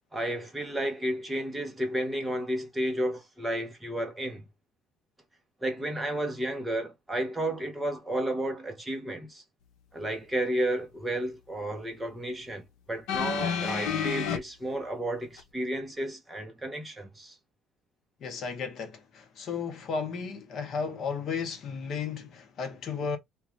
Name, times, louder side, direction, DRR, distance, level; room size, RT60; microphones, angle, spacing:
voice 1, 0.1-4.4 5.6-9.4 9.9-17.4, right 1 dB, 5° right, 0.7 m, -32 dB
sound 1, 13.1-14.4 15.4-15.5, left 7 dB, 80° left, 0.7 m, -29 dB
voice 2, 18.2-23.2, left 5 dB, 40° left, 0.8 m, -34 dB
2.5 x 2.2 x 3.0 m
cardioid pair, 165°, 0 cm